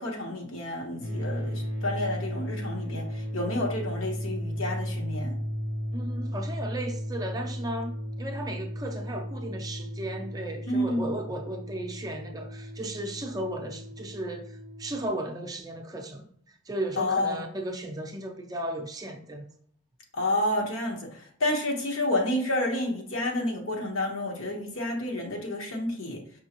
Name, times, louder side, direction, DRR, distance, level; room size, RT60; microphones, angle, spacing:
voice 1, 0.0-5.3 10.7-11.1 17.0-17.4 20.1-26.2, left 1 dB, 80° left, 1.0 m, -30 dB
sound 1, 1.0-15.1, equal, 35° left, 0.7 m, -35 dB
voice 2, 5.9-19.4, right 1 dB, 20° right, 0.4 m, -35 dB
5.3 x 3.3 x 2.9 m
head